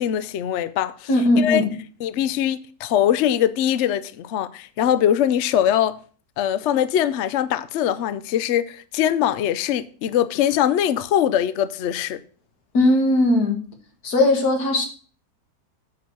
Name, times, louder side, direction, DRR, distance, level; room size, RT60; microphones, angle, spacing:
voice 1, 0.0-1.1 1.4-1.6 2.0-6.0 6.4-12.2, left 10 dB, 60° left, 0.8 m, -22 dB
voice 2, 1.1-1.7 12.7-13.6 14.0-14.9, left 2 dB, 90° left, 2.3 m, -18 dB
8.7 x 4.7 x 7.0 m
omnidirectional pair, 1.6 m